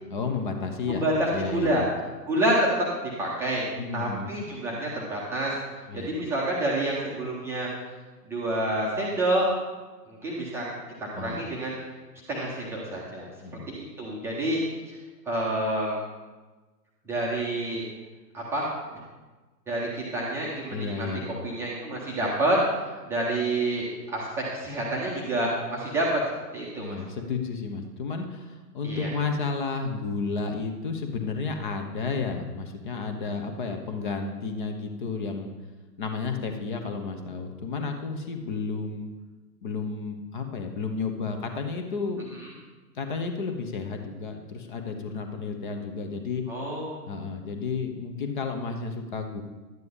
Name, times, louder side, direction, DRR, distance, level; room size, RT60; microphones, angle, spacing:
voice 1, 0.1-1.0 1.3-1.9 3.8-4.3 5.9-6.1 11.1-11.4 13.4-13.7 20.7-21.3 26.8-35.5 36.0-39.1 39.6-42.3 42.9-46.4 47.1-49.4, left 4 dB, 30° left, 5 dB, 0.9 m, -32 dB
voice 2, 0.9-1.8 2.3-3.6 3.9-5.6 5.9-7.7 8.3-9.5 10.1-10.7 11.0-11.8 12.3-13.3 13.7-14.6 14.9-15.0 15.3-15.9 17.1-17.9 18.3-18.7 19.7-21.1 21.4-22.6 23.1-26.2 26.5-26.9 28.8-29.1 46.5-47.0, right 1 dB, 5° right, -6 dB, 0.8 m, -28 dB
11.0 x 9.2 x 3.6 m, 1.3 s
figure-of-eight pair, 120°, 49 cm